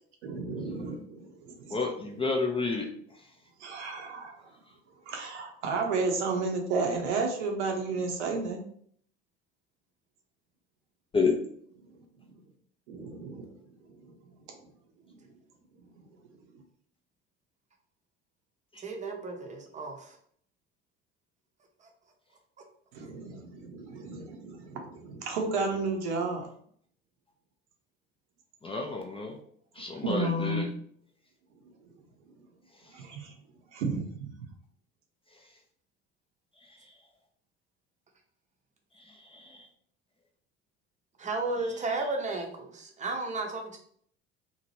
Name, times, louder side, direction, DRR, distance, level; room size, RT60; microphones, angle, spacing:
voice 1, 0.2-1.8 3.6-4.3 5.1-8.7 12.3-12.4 12.9-13.5 13.9-14.1 22.9-26.5 30.0-30.7 32.9-33.3 33.7-34.3, right 3 dB, 75° right, 3 dB, 0.7 m, -32 dB
voice 2, 1.7-2.9 11.1-11.3 28.6-29.4 29.8-30.7 39.3-39.6, left 4 dB, 15° left, 0 dB, 0.4 m, -29 dB
voice 3, 18.8-20.2 21.8-21.9 41.2-43.8, right 3 dB, 20° right, 2 dB, 0.7 m, -34 dB
2.7 x 2.2 x 2.9 m, 0.62 s
hypercardioid pair, 65°, 35 cm